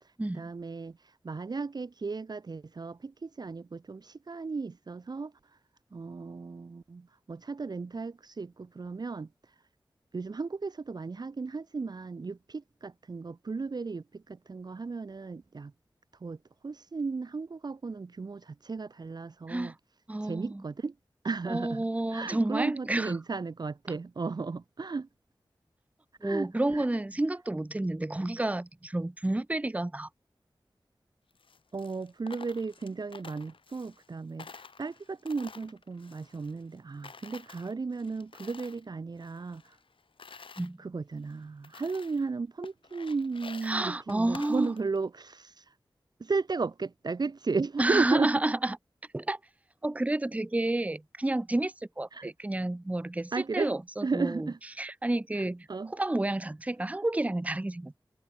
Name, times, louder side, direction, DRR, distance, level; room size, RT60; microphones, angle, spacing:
voice 1, 0.3-1.0 1.2-5.3 5.9-9.3 10.1-15.7 16.2-16.4 16.6-19.7 20.2-20.9 21.2-25.1 26.2-26.9 31.7-39.6 40.3-40.4 40.8-45.6 46.2-48.3 52.1-52.3 53.3-53.7 54.0-54.6 55.3-55.4 55.7-55.9, right 4 dB, 50° right, 0.6 m, -35 dB
voice 2, 20.1-20.6 21.5-23.2 26.2-30.1 40.6-40.8 43.6-44.7 47.8-48.8 49.1-49.4 49.8-54.5 54.8-58.0, right 2 dB, 15° right, 0.6 m, -30 dB
Coin (dropping), 31.3-34.1 34.4-36.8 37.0-38.8 39.2-40.7 41.2-41.3 41.6-42.3 42.6-45.0, left 5 dB, 85° left, 1.3 m, -50 dB
wide cardioid pair, 70°, 9 cm